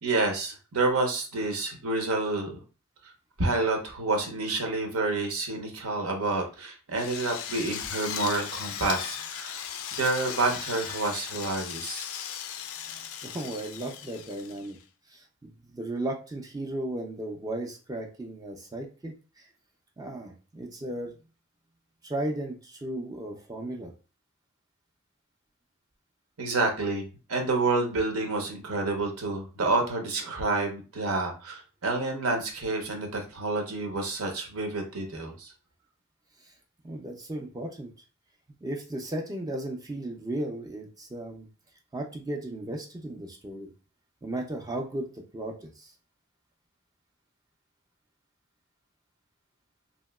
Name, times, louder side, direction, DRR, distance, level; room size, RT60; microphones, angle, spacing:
voice 1, 0.0-2.5 3.4-9.6 9.9-12.1 26.4-27.0 27.3-35.5, right 3 dB, 85° right, 3 dB, 0.7 m, -29 dB
Drill, 7.0-14.8, left 9 dB, 70° left, 0.3 m, -37 dB
voice 2, 12.9-14.8 15.1-19.5 20.0-21.1 22.0-23.9 36.8-37.9 38.6-41.5 41.9-43.7 44.2-45.9, right 1 dB, 15° right, 1 dB, 0.4 m, -35 dB
2.9 x 2.7 x 2.2 m, 0.34 s
head